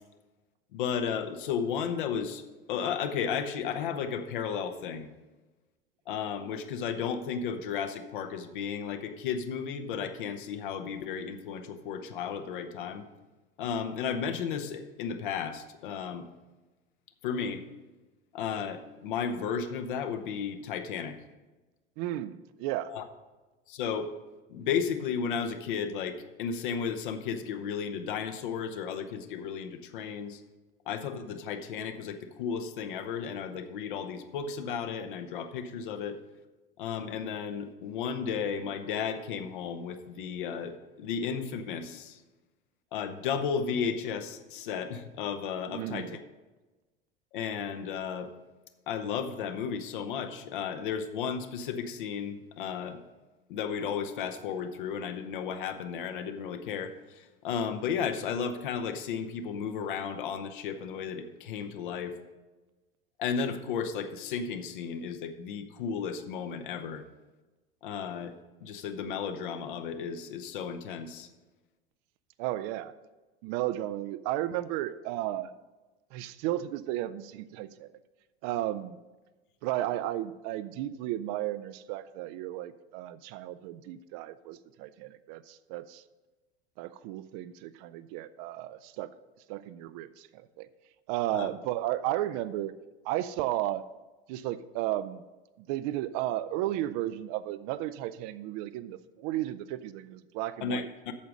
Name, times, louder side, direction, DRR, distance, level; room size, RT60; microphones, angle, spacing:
voice 1, 0.7-2.4 2.7-5.1 6.1-13.1 13.6-16.3 17.2-17.6 18.3-21.2 22.9-23.0 23.7-24.1 24.5-30.4 30.9-36.2 36.8-42.2 42.9-46.2 47.3-48.3 48.9-53.0 53.5-62.2 63.2-67.0 67.8-71.3 91.3-91.5 100.6-101.1, left 7 dB, 60° left, 8 dB, 0.9 m, -34 dB
voice 2, 22.0-23.0 45.7-46.2 72.4-72.9 73.4-75.5 76.1-77.9 78.4-79.0 79.6-86.0 86.8-89.1 89.5-90.7 91.1-92.7 93.0-93.8 94.3-95.2 95.6-100.9, right 14 dB, 40° right, 14 dB, 0.4 m, -34 dB
8.4 x 6.9 x 6.2 m, 1.2 s
figure-of-eight pair, 75°, 29 cm